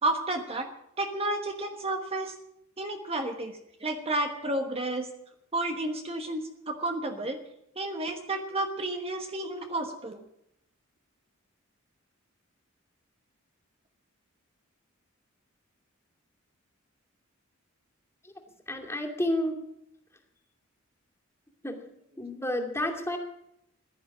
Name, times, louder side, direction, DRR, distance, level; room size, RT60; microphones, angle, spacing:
voice 1, 0.0-0.7 1.0-2.3 2.8-5.1 5.5-7.4 7.7-10.2, right 2 dB, 30° right, 5 dB, 1.3 m, -31 dB
voice 2, 18.7-19.6 21.6-21.8 22.2-23.2, left 1 dB, 15° left, 2 dB, 2.6 m, -30 dB
15.5 x 11.5 x 7.3 m, 0.78 s
head